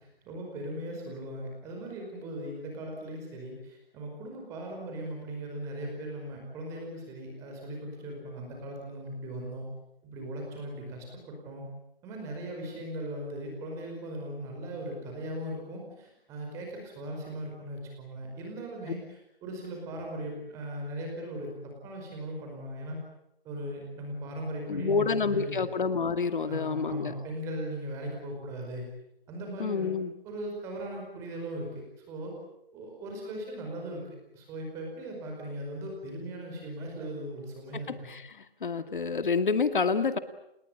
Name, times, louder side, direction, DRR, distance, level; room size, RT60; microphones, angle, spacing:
voice 1, 0.0-9.7 10.0-11.6 12.0-23.0 23.4-25.7 26.5-28.8 29.3-29.9 30.2-32.3 32.7-34.1 34.3-38.1, right 1 dB, 10° right, 1 dB, 5.0 m, -38 dB
voice 2, 24.7-27.1 29.6-30.1 37.7-38.2 38.6-40.2, left 5 dB, 55° left, 11 dB, 2.2 m, -28 dB
29.5 x 20.0 x 8.9 m, 0.83 s
hypercardioid pair, 175°, 30 cm